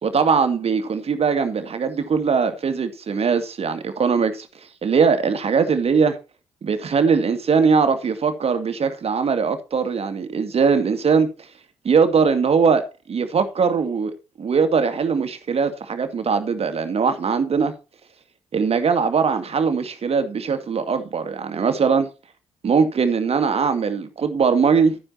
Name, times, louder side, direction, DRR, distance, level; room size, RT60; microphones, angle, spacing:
voice 1, 0.0-4.5 4.8-6.1 6.6-11.3 11.8-17.7 18.5-22.1 22.6-25.0, right 5 dB, 40° right, 2.2 m, -20 dB
13.0 x 9.9 x 2.9 m
figure-of-eight pair, 45°, 16 cm